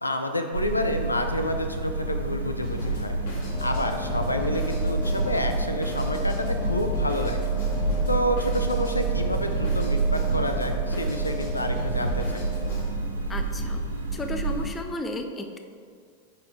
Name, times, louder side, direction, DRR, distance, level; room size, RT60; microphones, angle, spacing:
voice 1, 0.0-3.2 3.6-7.4 8.1-12.4, left 1 dB, 85° left, 6 dB, 0.5 m, -29 dB
sound 1, 0.5-14.7, right 3 dB, 75° right, 0.8 m, -28 dB
Drum kit, 2.6-12.8, left 1 dB, 55° left, 1.9 m, -38 dB
Wind instrument woodwind instrument, 3.4-12.8, left 2 dB, 5° right, 0.8 m, -39 dB
voice 2, 13.3-13.8 14.1-15.6, left 2 dB, 15° left, 6 dB, 0.7 m, -33 dB
9.9 x 4.2 x 4.5 m, 2.1 s
figure-of-eight pair, 90°, 0 cm